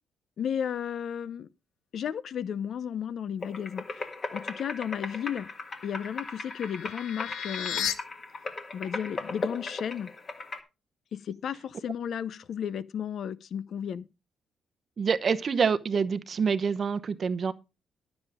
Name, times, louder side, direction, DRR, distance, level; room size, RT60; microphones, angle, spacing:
voice 1, 0.4-1.5 1.9-5.5 5.8-7.9 8.7-10.1 11.1-14.0, left 8 dB, 45° left, 0.7 m, -34 dB
sound 1, 3.4-10.6, left 3 dB, 25° left, 1.7 m, -38 dB
sound 2, 5.7-7.9, left 9 dB, 85° left, 1.5 m, -35 dB
voice 2, 15.0-17.5, right 6 dB, 30° right, 0.9 m, -26 dB
12.0 x 7.1 x 4.9 m
cardioid pair, 175°, 0 cm